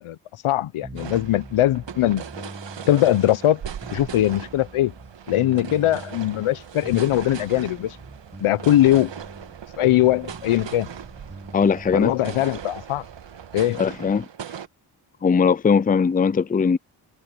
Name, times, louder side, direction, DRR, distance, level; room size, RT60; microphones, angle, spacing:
voice 1, 0.4-2.5 2.9-3.6 3.9-4.9 5.3-8.0 8.4-9.1 9.8-10.9 11.9-13.0 13.5-13.8, left 13 dB, 80° left, 0.9 m, -21 dB
sound 1, 0.8-12.7, right 2 dB, 15° right, 6.4 m, -43 dB
sound 2, 0.9-14.7, right 8 dB, 60° right, 1.7 m, -39 dB
sound 3, 3.6-14.3, right 8 dB, 75° right, 6.0 m, -45 dB
voice 2, 11.5-12.1 13.8-14.3 15.2-16.8, left 6 dB, 20° left, 0.5 m, -19 dB
cardioid pair, 50°, 50 cm